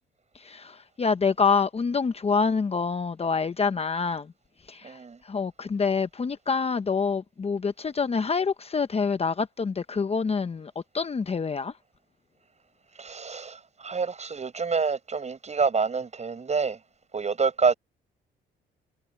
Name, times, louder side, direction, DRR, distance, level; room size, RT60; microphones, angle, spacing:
voice 1, 0.3-4.3 4.7-11.8, left 5 dB, 30° left, 1.0 m, -27 dB
voice 2, 4.8-5.2 13.0-16.8 17.1-17.7, right 5 dB, 35° right, 7.4 m, -27 dB
cardioid pair, 90°, 20 cm